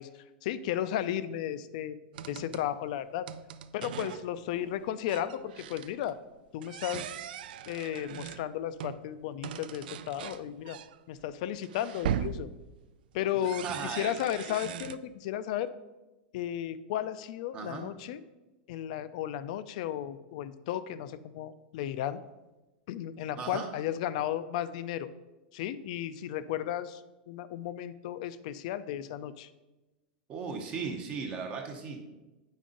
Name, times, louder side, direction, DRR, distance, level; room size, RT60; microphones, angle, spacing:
voice 1, 0.0-2.0 2.3-3.3 3.7-6.2 6.5-7.1 7.7-10.8 11.1-12.5 13.1-15.7 16.3-18.2 18.7-22.2 22.9-25.1 25.5-29.5, left 11 dB, 50° left, 14 dB, 0.4 m, -34 dB
sound 1, 2.1-2.7 3.3-4.4 4.7-4.8 5.1-6.1 6.6-9.0 9.4-15.0, right 9 dB, 65° right, 0.4 m, -39 dB
voice 2, 13.4-14.2 17.5-17.9 23.4-23.7 30.3-32.1, right 5 dB, 25° right, 3 dB, 0.7 m, -37 dB
8.5 x 5.4 x 3.7 m, 1.1 s
supercardioid pair, 165°, 5 cm